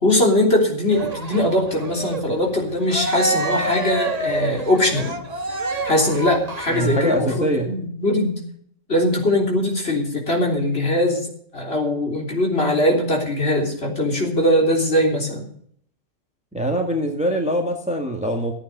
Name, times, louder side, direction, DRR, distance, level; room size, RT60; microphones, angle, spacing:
voice 1, 0.0-5.2 5.8-8.4 8.9-15.5, left 1 dB, 50° left, 0 dB, 3.7 m, -21 dB
Cheering, 0.9-7.3, right 2 dB, 35° right, 1.3 m, -28 dB
voice 2, 6.7-7.7 16.5-18.5, right 1 dB, 5° right, 2 dB, 1.7 m, -23 dB
15.0 x 8.8 x 6.6 m, 0.64 s
omnidirectional pair, 1.3 m